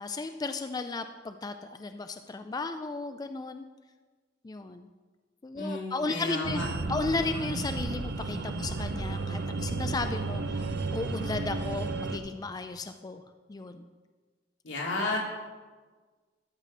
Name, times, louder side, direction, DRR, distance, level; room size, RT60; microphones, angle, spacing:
voice 1, 0.0-3.6 4.4-4.9 5.4-6.6 6.9-10.7 10.9-13.2 13.5-13.8, left 3 dB, 20° left, 8 dB, 0.3 m, -34 dB
voice 2, 5.6-6.9 14.6-15.2, left 2 dB, 85° left, -2 dB, 2.5 m, -33 dB
sound 1, 6.1-11.2, right 2 dB, 80° right, 2.3 m, -53 dB
sound 2, 6.4-12.2, right 3 dB, 65° right, 0.7 m, -33 dB
12.5 x 6.3 x 5.0 m, 1.4 s
head